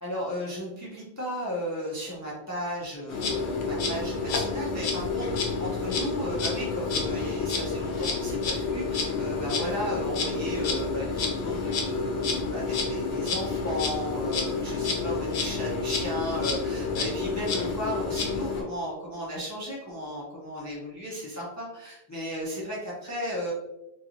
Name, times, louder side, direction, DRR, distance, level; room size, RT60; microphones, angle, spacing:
voice 1, 0.0-23.5, equal, 20° left, -5 dB, 0.5 m, -35 dB
Insect, 3.1-18.6, left 4 dB, 75° left, 0.9 m, -29 dB
3.0 x 2.9 x 2.5 m, 0.89 s
omnidirectional pair, 1.1 m